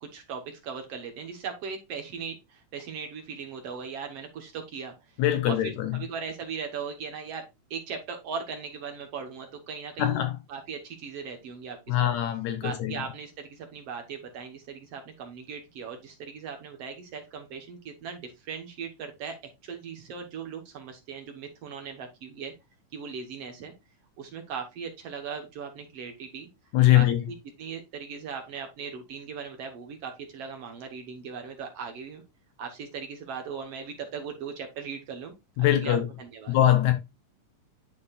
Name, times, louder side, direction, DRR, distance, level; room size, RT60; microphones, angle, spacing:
voice 1, 0.0-5.2 5.5-10.2 10.5-12.1 12.6-19.4 19.6-22.5 22.9-23.7 24.2-26.5 26.9-32.2 32.6-36.6, right 6 dB, 60° right, 1.8 m, -38 dB
voice 2, 5.2-6.0 10.0-10.3 11.9-12.9 26.7-27.2 35.6-36.1 36.5-36.9, left 13 dB, 75° left, 1.9 m, -22 dB
11.0 x 4.2 x 2.3 m
omnidirectional pair, 3.6 m